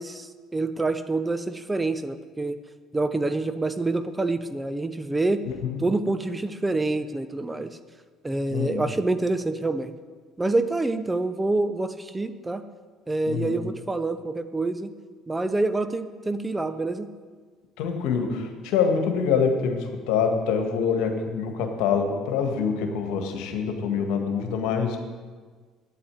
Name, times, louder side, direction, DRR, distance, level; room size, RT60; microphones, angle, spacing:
voice 1, 0.0-2.6 2.9-5.4 5.8-7.8 8.2-9.9 10.4-12.6 13.1-14.9 15.3-17.1, right 2 dB, 15° right, 10 dB, 0.8 m, -27 dB
voice 2, 5.5-5.8 8.5-8.9 13.3-13.6 17.8-25.0, left 6 dB, 70° left, 5 dB, 1.7 m, -25 dB
9.1 x 8.7 x 9.1 m, 1.5 s
hypercardioid pair, 60°, 0 cm